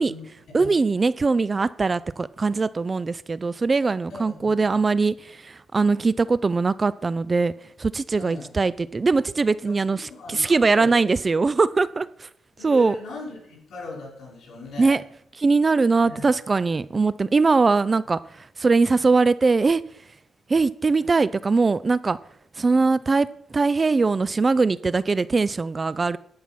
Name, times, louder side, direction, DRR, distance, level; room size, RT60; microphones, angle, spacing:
voice 1, 0.0-0.7 4.1-4.8 8.2-8.5 9.9-11.0 12.6-15.0 16.0-16.3, left 3 dB, 70° left, -2 dB, 5.1 m, -39 dB
voice 2, 0.5-7.5 7.8-12.3 12.6-13.0 14.8-15.0 15.4-19.8 20.5-22.2 22.6-26.2, right 4 dB, 30° right, 18 dB, 0.3 m, -21 dB
11.0 x 5.6 x 6.1 m, 0.70 s
cardioid pair, 105°, 0 cm